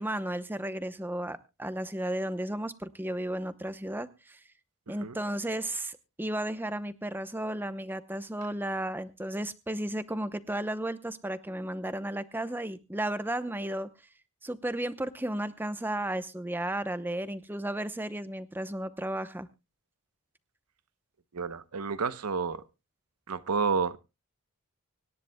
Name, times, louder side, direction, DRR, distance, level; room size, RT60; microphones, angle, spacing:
voice 1, 0.0-4.4 4.9-13.9 14.4-19.5, right 1 dB, 10° right, 0.7 m, -34 dB
voice 2, 4.9-5.2 21.3-22.6 23.3-24.0, right 5 dB, 90° right, 0.8 m, -30 dB
25.0 x 10.5 x 2.2 m
head